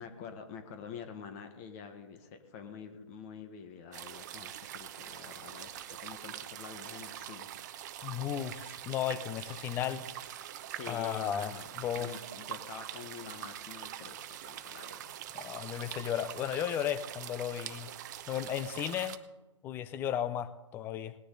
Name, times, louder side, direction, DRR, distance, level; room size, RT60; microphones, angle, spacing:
voice 1, 0.0-7.5 10.7-11.7 11.9-15.2, left 6 dB, 30° left, 7 dB, 1.4 m, -47 dB
sound 1, 3.9-19.2, right 11 dB, 35° right, 0.8 m, -44 dB
voice 2, 8.0-10.0 10.9-12.2 15.3-17.9 18.3-19.2 19.6-21.2, left 10 dB, 15° left, 13 dB, 0.6 m, -35 dB
19.0 x 10.0 x 3.9 m, 1.1 s
hypercardioid pair, 145°, 16 cm